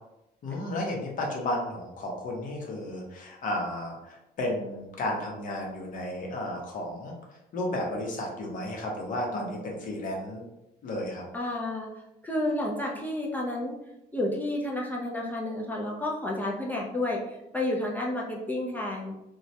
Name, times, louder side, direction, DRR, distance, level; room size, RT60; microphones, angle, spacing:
voice 1, 0.4-7.1 7.5-10.4 10.8-11.2, left 1 dB, 55° left, -1 dB, 0.8 m, -33 dB
voice 2, 11.3-11.9 12.2-13.8 14.1-19.1, left 1 dB, 10° left, -3 dB, 0.4 m, -31 dB
2.2 x 2.1 x 2.7 m, 0.90 s
cardioid pair, 110°, 17 cm